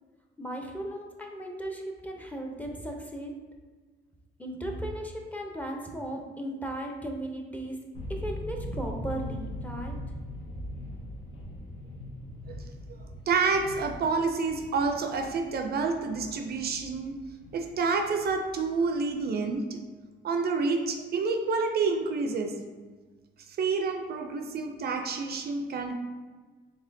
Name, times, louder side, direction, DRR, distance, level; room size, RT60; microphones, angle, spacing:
voice 1, 0.4-3.3 4.4-7.8 8.1-9.9, right 1 dB, 5° left, 1 dB, 0.6 m, -36 dB
sound 1, 7.9-19.5, left 1 dB, 80° left, 0.8 m, -41 dB
voice 2, 12.9-17.2 17.5-19.8 20.2-22.6 23.5-25.9, right 4 dB, 55° right, 5 dB, 0.4 m, -28 dB
4.1 x 3.3 x 2.6 m, 1.4 s
cardioid pair, 90°, 20 cm